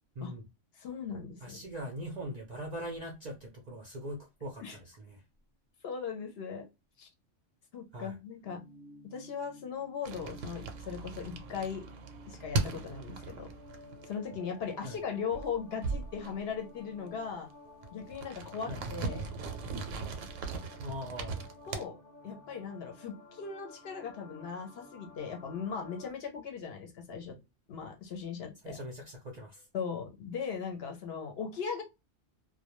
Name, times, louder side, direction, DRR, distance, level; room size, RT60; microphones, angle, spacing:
voice 1, 0.7-1.6 4.6-4.8 5.8-6.7 7.0-7.1 7.7-8.6 9.0-11.8 12.3-13.5 14.0-17.5 17.9-19.2 21.7-22.0 22.2-27.4 27.7-28.8 29.7-31.8, left 6 dB, 65° left, 0.8 m, -38 dB
voice 2, 1.4-5.2 7.9-8.2 14.8-15.0 18.7-18.8 20.8-21.4 28.6-29.7, equal, 55° right, 0.5 m, -41 dB
sound 1, 8.4-26.1, left 2 dB, 20° left, 0.5 m, -53 dB
sound 2, 10.0-14.5 14.8-15.0 15.3-16.6 17.2-17.3 17.6-21.8, right 3 dB, 85° right, 0.9 m, -38 dB
2.2 x 2.1 x 2.9 m
omnidirectional pair, 1.3 m